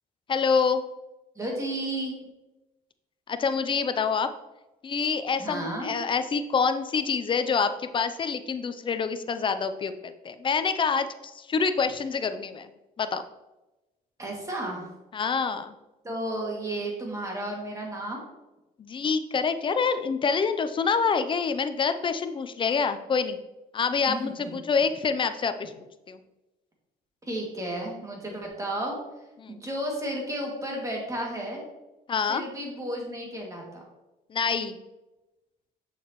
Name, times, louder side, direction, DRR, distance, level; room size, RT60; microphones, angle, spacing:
voice 1, 0.3-0.8 3.3-4.3 4.8-12.7 13.0-13.2 15.1-15.7 18.8-23.4 23.7-25.7 26.1-26.2 29.4-29.6 32.1-32.4 34.3-34.8, left 5 dB, 30° left, 10 dB, 0.5 m, -26 dB
voice 2, 1.4-2.1 5.4-5.9 14.2-14.9 16.0-18.2 24.1-24.6 27.2-29.0 29.5-31.6 32.3-33.8, right 1 dB, 20° right, -1 dB, 2.3 m, -33 dB
7.0 x 6.4 x 3.1 m, 1.0 s
cardioid pair, 110°, 17 cm